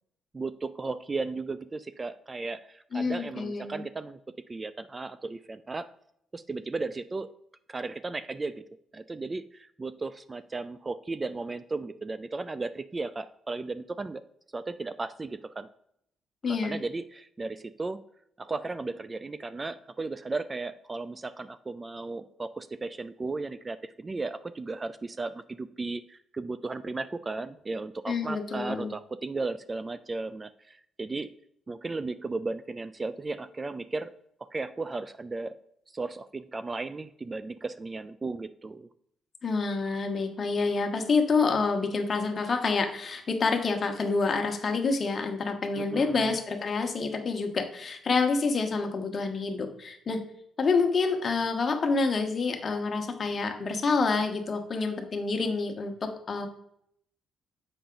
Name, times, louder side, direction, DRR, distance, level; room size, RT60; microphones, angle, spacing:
voice 1, 0.3-4.2 4.5-5.9 6.3-7.3 7.7-8.6 8.9-14.2 14.5-15.7 16.5-18.0 18.4-31.3 31.7-34.1 34.5-35.6 35.9-38.9 45.8-46.4, right 3 dB, 25° right, 14 dB, 0.3 m, -35 dB
voice 2, 2.9-3.8 16.4-16.8 28.1-28.9 39.4-50.2 50.6-56.5, left 4 dB, 40° left, 5 dB, 1.1 m, -28 dB
7.1 x 5.6 x 3.8 m, 0.72 s
cardioid pair, 90°, 0 cm